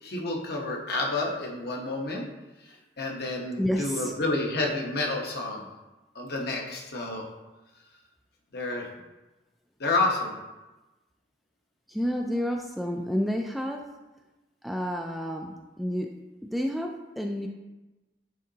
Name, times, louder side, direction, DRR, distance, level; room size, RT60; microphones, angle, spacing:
voice 1, 0.0-2.2 2.6-5.7 6.1-7.2 8.5-8.9 9.8-10.3, left 2 dB, 60° left, 0 dB, 1.0 m, -29 dB
voice 2, 3.6-4.1 11.9-13.8 14.6-16.1 16.4-17.5, equal, ahead, 2 dB, 0.3 m, -30 dB
9.9 x 3.7 x 2.8 m, 1.1 s
head